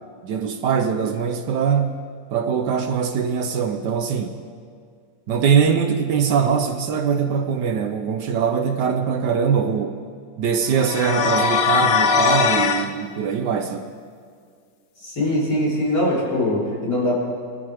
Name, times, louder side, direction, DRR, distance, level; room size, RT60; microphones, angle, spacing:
voice 1, 0.2-2.0 2.3-4.4 5.3-10.0 10.4-13.9, right 6 dB, 70° right, 7 dB, 1.3 m, -22 dB
sound 1, 10.7-12.9, left 6 dB, 65° left, 0.6 m, -20 dB
voice 2, 15.0-17.2, left 1 dB, 50° left, -7 dB, 4.5 m, -22 dB
22.5 x 14.0 x 3.5 m, 2.1 s
omnidirectional pair, 2.0 m